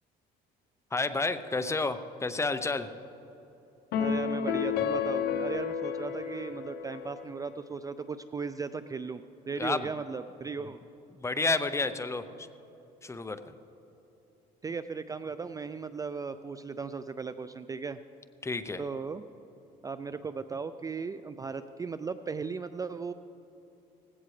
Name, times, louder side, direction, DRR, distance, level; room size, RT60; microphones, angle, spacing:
voice 1, 0.9-2.9 9.6-9.9 11.2-12.5 13.0-13.5 18.4-18.8, left 3 dB, 15° left, 11 dB, 0.7 m, -30 dB
sound 1, 3.9-7.4, left 7 dB, 75° left, 0.9 m, -31 dB
voice 2, 4.0-10.8 14.6-18.0 18.8-19.2 19.8-23.1, right 5 dB, 20° right, 11 dB, 0.4 m, -37 dB
18.5 x 16.0 x 3.3 m, 2.9 s
cardioid pair, 110°, 17 cm